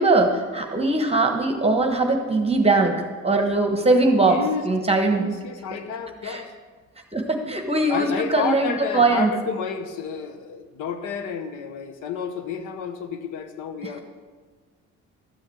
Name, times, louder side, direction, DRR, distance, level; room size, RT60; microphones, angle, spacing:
voice 1, 0.0-5.3 6.2-6.4 7.1-9.3 13.8-14.0, right 2 dB, 20° right, 4 dB, 1.2 m, -21 dB
voice 2, 4.3-4.6 5.1-6.5 7.9-14.0, left 6 dB, 90° left, 8 dB, 1.0 m, -30 dB
13.0 x 6.4 x 7.8 m, 1.5 s
cardioid pair, 90°, 30 cm